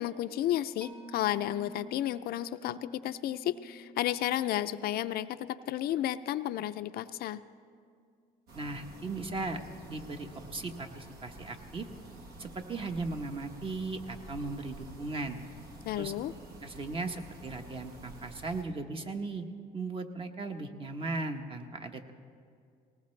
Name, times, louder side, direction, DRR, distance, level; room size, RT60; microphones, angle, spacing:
voice 1, 0.0-7.4 15.8-16.3, left 12 dB, 65° left, 11 dB, 0.4 m, -32 dB
Mallet percussion, 0.8-7.9, equal, 5° left, 0.6 m, -52 dB
voice 2, 8.5-9.6 9.9-11.9 12.4-15.4 15.9-16.2 16.6-19.5 19.7-22.1, right 3 dB, 30° right, 6 dB, 1.1 m, -37 dB
sound 1, 8.5-18.6, right 2 dB, 70° right, 1.8 m, -49 dB
19.0 x 18.5 x 3.2 m, 2.3 s
cardioid pair, 110°, 17 cm